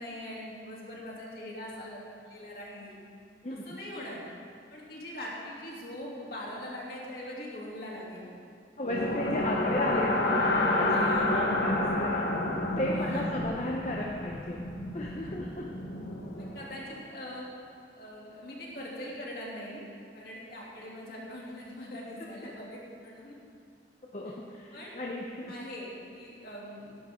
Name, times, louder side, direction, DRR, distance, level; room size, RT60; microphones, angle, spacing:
voice 1, 0.0-3.0 3.6-4.2 4.7-8.3 9.9-10.1 10.9-11.4 12.9-13.3 15.2-15.3 16.4-17.4 17.9-19.8 20.1-23.3 24.2-24.3 24.7-24.9 25.5-27.0, left 1 dB, 55° left, -5 dB, 3.1 m, -42 dB
voice 2, 3.4-3.8 8.8-10.2 10.6-12.3 12.8-14.6 14.9-15.7 24.1-25.6, left 1 dB, 40° left, -2 dB, 0.9 m, -34 dB
sound 1, 8.9-16.9, left 2 dB, 70° left, 1.4 m, -30 dB
17.5 x 11.0 x 3.8 m, 2.5 s
head